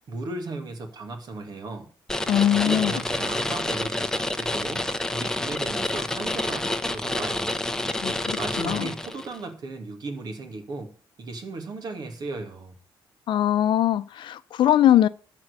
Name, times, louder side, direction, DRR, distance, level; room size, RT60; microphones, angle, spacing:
voice 1, 0.1-1.9 2.6-7.6 8.4-10.9 11.2-12.8, right 3 dB, 50° right, 2.5 m, -36 dB
sound 1, 2.1-9.4, left 1 dB, 5° left, 0.9 m, -28 dB
voice 2, 2.3-3.0 8.0-8.9 13.3-15.1, left 11 dB, 70° left, 0.7 m, -21 dB
13.5 x 4.6 x 8.2 m
cardioid pair, 135°, 9 cm